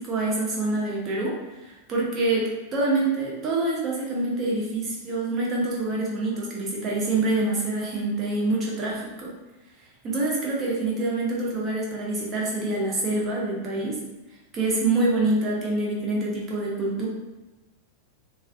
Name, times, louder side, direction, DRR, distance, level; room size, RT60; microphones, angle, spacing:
voice 1, 0.0-1.4 1.7-9.3 10.0-14.0 14.5-17.1, right 2 dB, 30° right, -4 dB, 0.7 m, -26 dB
2.4 x 2.4 x 2.3 m, 1.1 s
figure-of-eight pair, 90°, 0 cm